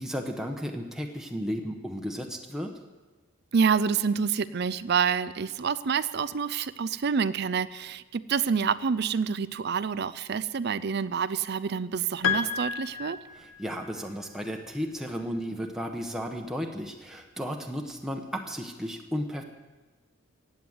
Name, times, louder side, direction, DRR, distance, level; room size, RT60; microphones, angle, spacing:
voice 1, 0.0-2.7 13.4-19.4, equal, ahead, 1 dB, 1.0 m, -34 dB
voice 2, 3.5-13.2, right 6 dB, 50° right, 17 dB, 0.4 m, -27 dB
Piano, 12.2-13.9, left 7 dB, 70° left, 1.0 m, -31 dB
16.0 x 9.4 x 8.0 m, 1.2 s
head